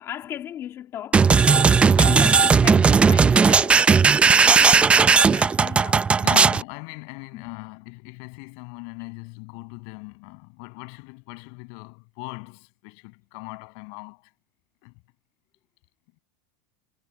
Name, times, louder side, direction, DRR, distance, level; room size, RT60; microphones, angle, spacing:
voice 1, 0.0-3.8 4.4-6.1 7.3-7.6, left 11 dB, 30° left, 2.1 m, -37 dB
sound 1, 1.1-6.6, right 5 dB, 10° right, 0.4 m, -16 dB
voice 2, 6.2-14.3 14.8-15.0, left 40 dB or more, 55° left, 7.4 m, -39 dB
supercardioid pair, 150°, 10 cm